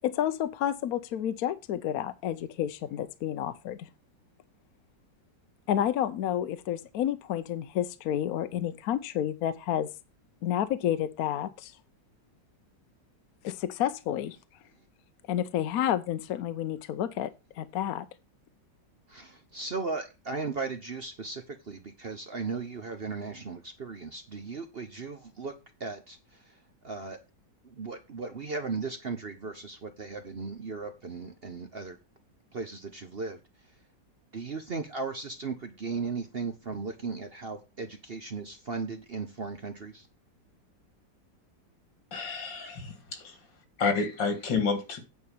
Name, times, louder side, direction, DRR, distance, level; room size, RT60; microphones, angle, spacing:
voice 1, 0.0-3.9 5.7-9.9 10.4-11.8 13.4-14.4 15.3-18.1, left 10 dB, 65° left, 1.0 m, -30 dB
voice 2, 19.1-25.5 25.8-26.2 26.8-27.2 27.6-32.0 32.5-33.4 34.3-40.1, right 4 dB, 45° right, 0.8 m, -36 dB
voice 3, 42.1-43.4 43.8-45.0, left 4 dB, 85° left, 2.6 m, -29 dB
9.4 x 4.4 x 6.9 m
omnidirectional pair, 1.9 m